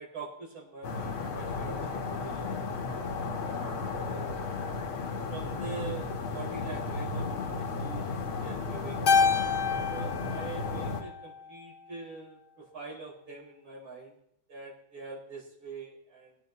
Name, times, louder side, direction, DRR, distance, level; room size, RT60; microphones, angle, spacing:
voice 1, 0.0-2.7 3.5-4.6 5.3-9.1 9.9-14.1 14.5-16.4, right 4 dB, 75° right, -4 dB, 4.9 m, -44 dB
sound 1, 0.8-11.0, left 4 dB, 90° left, 2.3 m, -34 dB
Keyboard (musical), 9.1-11.6, left 5 dB, 70° left, 0.4 m, -28 dB
21.5 x 9.2 x 3.1 m, 0.75 s
omnidirectional pair, 2.2 m